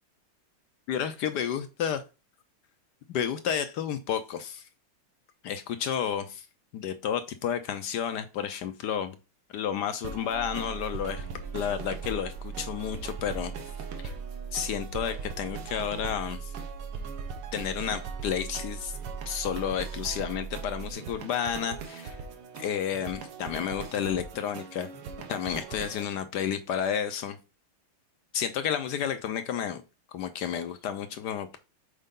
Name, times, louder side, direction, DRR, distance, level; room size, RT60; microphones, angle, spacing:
voice 1, 0.9-2.0 3.1-4.7 5.4-6.5 6.7-9.2 9.5-11.3 11.5-13.5 14.0-14.1 14.5-16.5 17.5-19.0 19.3-22.2 22.6-24.9 25.3-27.4 28.3-29.8 30.1-31.6, left 8 dB, 70° left, 1.0 m, -31 dB
sound 1, 10.0-26.0, right 5 dB, 90° right, 1.9 m, -42 dB
sound 2, 10.3-20.9, right 6 dB, 70° right, 1.3 m, -40 dB
6.6 x 4.5 x 3.7 m
omnidirectional pair, 2.3 m